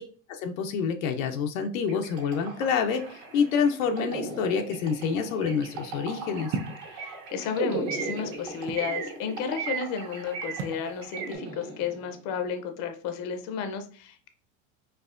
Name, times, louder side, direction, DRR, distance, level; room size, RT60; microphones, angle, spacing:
voice 1, 0.3-3.0 3.3-6.5, left 6 dB, 85° left, 4 dB, 0.7 m, -27 dB
sound 1, 1.9-12.3, right 3 dB, 50° right, 1.5 m, -39 dB
sound 2, 5.4-5.5 7.0-7.3 7.9-8.2 8.8-9.1 9.6-9.9 10.3-10.7 11.1-11.4, right 7 dB, 75° right, 1.6 m, -35 dB
sound 3, 6.5-6.9 7.7-8.9 10.6-10.9, right 5 dB, 30° right, 0.4 m, -34 dB
voice 2, 6.9-14.3, left 6 dB, 45° left, 6 dB, 0.6 m, -33 dB
4.5 x 2.7 x 2.5 m, 0.41 s
supercardioid pair, 145°, 39 cm